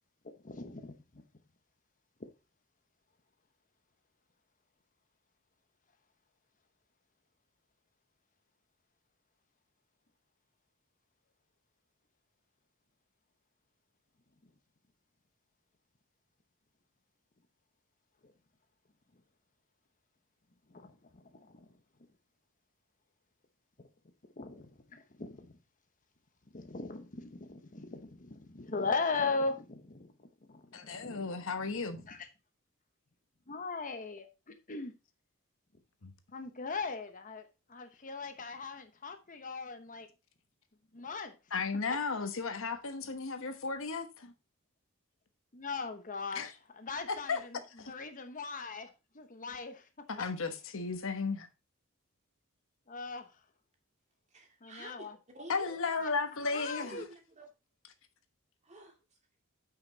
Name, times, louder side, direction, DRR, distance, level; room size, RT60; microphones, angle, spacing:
voice 1, 0.4-0.9 20.7-21.6 24.4-25.5 26.5-30.1 30.5-31.3 32.1-32.2 33.5-34.9 36.3-40.1 40.9-41.3 45.5-47.6 47.9-48.9 49.1-49.8 52.9-53.3 54.6-55.1 55.9-56.1 56.5-57.0, left 4 dB, 40° left, 1.0 m, -39 dB
voice 2, 30.7-32.0 36.0-36.1 41.5-44.3 46.3-46.5 47.1-47.4 47.8-47.9 50.1-51.5 55.5-56.9, left 4 dB, 65° left, 1.2 m, -34 dB
voice 3, 54.3-55.1 55.3-55.8 56.8-57.5 58.6-59.0, right 1 dB, 35° right, 2.3 m, -49 dB
8.9 x 6.0 x 4.0 m
head